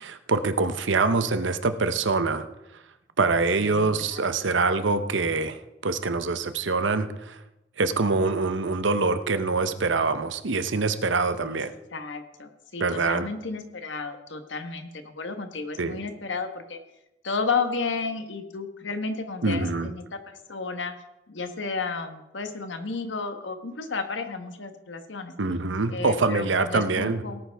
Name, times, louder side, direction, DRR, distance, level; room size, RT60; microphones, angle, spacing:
voice 1, 0.0-2.5 3.2-7.4 7.8-11.7 12.8-13.3 15.8-16.0 19.4-19.9 25.4-27.2, right 3 dB, 85° right, 11 dB, 0.8 m, -25 dB
voice 2, 3.6-4.2 11.4-11.6 11.9-16.8 17.2-20.9 21.3-25.3 25.9-27.4, left 4 dB, 80° left, 7 dB, 1.3 m, -32 dB
18.0 x 9.2 x 3.5 m, 0.93 s
head